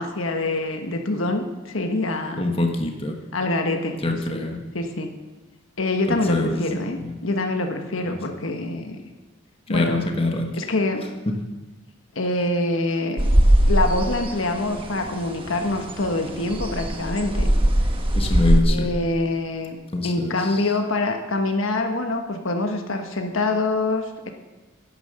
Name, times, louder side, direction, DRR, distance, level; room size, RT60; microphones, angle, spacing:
voice 1, 0.0-2.5 3.3-4.0 4.3-4.4 4.7-5.1 5.8-9.0 9.7-10.0 10.5-11.1 12.1-13.3 13.6-17.5 18.7-19.8 20.0-24.3, left 2 dB, 75° left, 4 dB, 1.3 m, -25 dB
voice 2, 2.4-3.2 4.0-4.6 6.1-6.6 6.9-7.1 8.0-8.1 9.7-10.5 11.3-11.4 18.1-18.9 19.9-20.7, left 2 dB, 30° left, 3 dB, 1.4 m, -24 dB
sound 1, 13.2-18.6, right 1 dB, 25° right, 1.2 m, -21 dB
11.0 x 11.0 x 6.8 m, 1.2 s
head